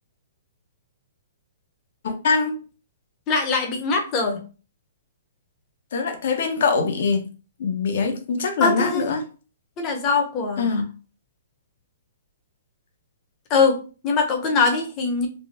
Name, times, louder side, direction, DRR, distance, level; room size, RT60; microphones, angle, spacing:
voice 1, 2.0-2.6 5.9-7.3 7.6-9.2 10.6-10.8, left 4 dB, 60° left, 0.9 m, -23 dB
voice 2, 3.3-4.4 8.6-9.1 9.8-10.8 13.5-15.3, left 4 dB, 25° left, 0.8 m, -22 dB
3.4 x 2.2 x 4.1 m
hypercardioid pair, 160°, 0 cm